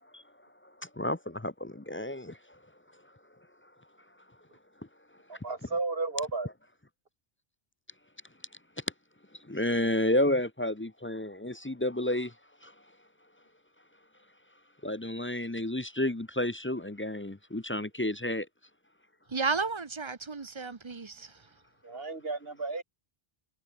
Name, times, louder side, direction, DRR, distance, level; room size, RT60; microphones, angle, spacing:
voice 1, 1.0-2.4 9.5-12.3 12.6-12.7 14.8-18.5, left 1 dB, 15° left, 0.6 m, -30 dB
voice 2, 5.3-6.5 21.8-22.8, right 3 dB, 65° right, 3.2 m, -33 dB
voice 3, 19.3-21.3, right 4 dB, 30° right, 0.9 m, -33 dB
omnidirectional pair, 1.1 m